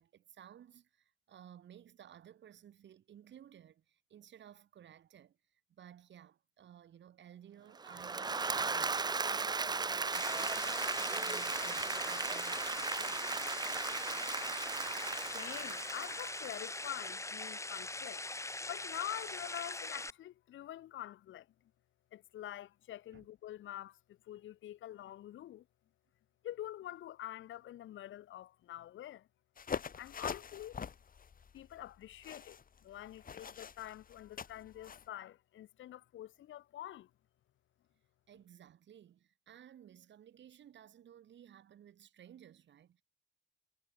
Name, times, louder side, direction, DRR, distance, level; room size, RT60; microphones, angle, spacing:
voice 1, 0.0-13.2 23.1-23.2 30.2-30.3 38.3-43.0, right 10 dB, 65° right, 7.3 m, -57 dB
Applause / Crowd, 7.8-16.9, right 4 dB, 20° right, 0.6 m, -37 dB
sound 1, 10.1-20.1, left 2 dB, 15° left, 2.2 m, -42 dB
voice 2, 15.3-18.3 18.7-21.5 22.1-25.7 26.4-29.3 29.9-30.8 31.5-37.1, left 12 dB, 75° left, 3.0 m, -46 dB
sound 2, 29.6-35.0, left 6 dB, 45° left, 4.6 m, -44 dB
cardioid pair, 90°, 20 cm